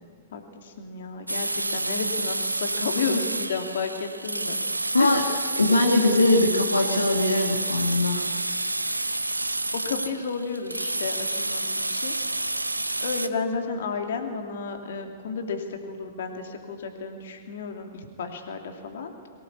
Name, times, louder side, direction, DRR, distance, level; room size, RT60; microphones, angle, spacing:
voice 1, 0.3-4.6 5.0-5.2 9.7-12.1 13.0-19.1, left 5 dB, 60° left, 4 dB, 2.8 m, -32 dB
sound 1, 1.3-13.3, right 2 dB, 85° right, 0.8 m, -29 dB
voice 2, 5.6-8.2, left 2 dB, 85° left, 2 dB, 2.1 m, -21 dB
23.0 x 18.5 x 8.4 m, 2.1 s
figure-of-eight pair, 105°, 0 cm